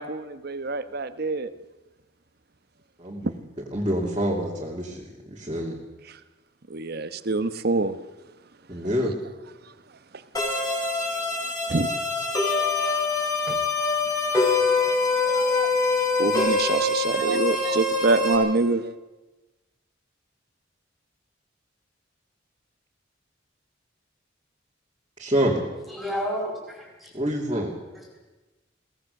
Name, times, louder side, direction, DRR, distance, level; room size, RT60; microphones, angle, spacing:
voice 1, 0.0-1.5 3.2-3.3 6.7-8.0 11.7-11.9 13.5-13.6 15.2-15.7 16.2-18.9, right 3 dB, 55° right, 12 dB, 1.0 m, -26 dB
voice 2, 3.0-3.3 3.7-5.8 8.7-9.1 25.2-25.6 27.1-27.7, equal, 25° right, -4 dB, 2.7 m, -26 dB
sound 1, 10.3-18.3, left 3 dB, 20° left, 6.1 m, -24 dB
voice 3, 25.9-27.1, equal, ahead, -3 dB, 4.8 m, -31 dB
22.0 x 18.0 x 6.6 m, 1.1 s
head